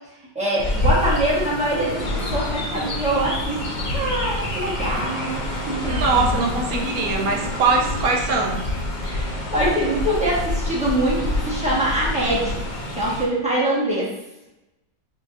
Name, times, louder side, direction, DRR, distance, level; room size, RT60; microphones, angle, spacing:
voice 1, 0.3-6.5 9.0-12.6 12.9-14.1, right 1 dB, 5° right, -7 dB, 1.0 m, -24 dB
Chirp tweet, 0.6-13.2, left 1 dB, 50° left, 0.5 m, -27 dB
voice 2, 5.9-8.6, right 3 dB, 70° right, 1 dB, 1.0 m, -22 dB
5.5 x 2.9 x 2.5 m, 0.95 s
omnidirectional pair, 1.9 m